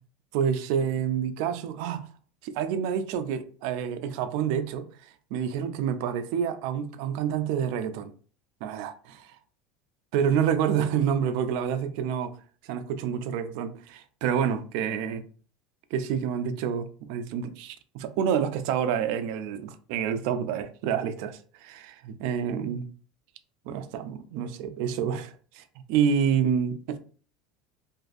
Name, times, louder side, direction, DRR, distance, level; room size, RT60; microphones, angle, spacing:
voice 1, 0.3-2.1 2.4-4.9 5.3-8.1 8.6-9.3 10.1-12.3 12.7-15.2 15.9-22.9 23.7-25.6 25.9-27.0, right 8 dB, 65° right, 0.3 m, -28 dB
2.5 x 2.4 x 2.4 m
supercardioid pair, 145°, 0 cm